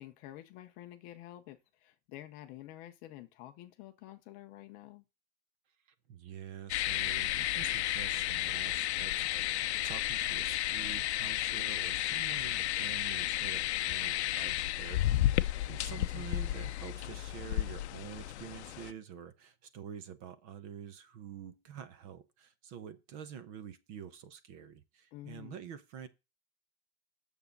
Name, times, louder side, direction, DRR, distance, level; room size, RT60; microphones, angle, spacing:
voice 1, 0.0-5.0 15.9-16.4 25.1-25.6, left 14 dB, 25° left, 0.6 m, -49 dB
voice 2, 6.1-26.1, right 8 dB, 30° right, 0.8 m, -47 dB
sound 1, 6.7-18.9, left 14 dB, 70° left, 0.7 m, -33 dB
8.5 x 7.1 x 5.2 m
supercardioid pair, 175°, 35 cm